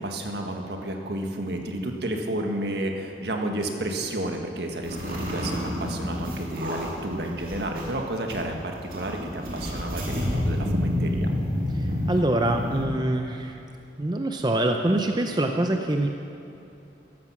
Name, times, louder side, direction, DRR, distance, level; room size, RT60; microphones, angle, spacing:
voice 1, 0.0-11.3, right 1 dB, 65° right, 3 dB, 1.5 m, -31 dB
sound 1, 4.8-7.9 8.3-8.4 8.7-12.8, left 1 dB, 50° right, 2.8 m, -29 dB
voice 2, 11.7-13.6 14.0-16.1, right 1 dB, 25° right, 4 dB, 0.6 m, -25 dB
14.5 x 12.0 x 6.1 m, 2.8 s
head